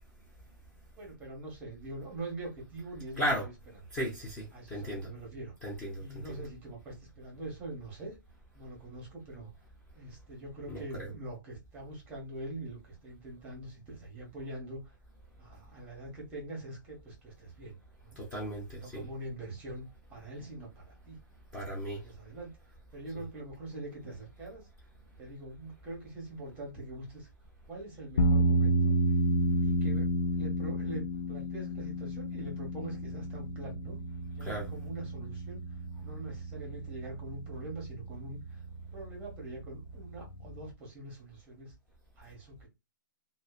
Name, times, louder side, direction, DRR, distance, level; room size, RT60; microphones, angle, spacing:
voice 1, 1.0-3.5 4.5-5.5 6.0-8.1 8.5-9.5 9.9-14.8 15.4-18.2 18.7-19.8 20.1-21.2 21.9-22.5 22.9-24.7 25.2-27.3 27.7-28.9 29.6-34.0 34.4-35.6 36.0-38.6 38.9-41.7 42.2-42.6, right 1 dB, 15° right, 0.8 m, -43 dB
voice 2, 3.2-3.5 3.9-5.1 5.6-6.4 10.7-11.1 18.2-19.1 21.5-22.0 23.1-23.2 34.4-34.7, equal, 10° left, 0.5 m, -36 dB
sound 1, 28.2-40.7, right 1 dB, 70° left, 0.4 m, -31 dB
2.6 x 2.0 x 2.3 m
hypercardioid pair, 165°, 11 cm